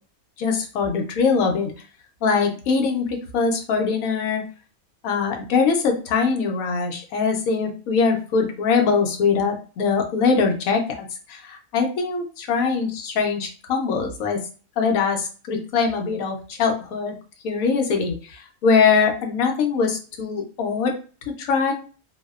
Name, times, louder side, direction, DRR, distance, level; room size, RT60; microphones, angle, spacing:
voice 1, 0.4-1.7 2.2-4.4 5.0-14.4 14.8-17.2 17.4-20.9 21.4-21.7, left 5 dB, 75° left, 3 dB, 1.0 m, -22 dB
2.6 x 2.0 x 2.3 m, 0.37 s
omnidirectional pair, 1.6 m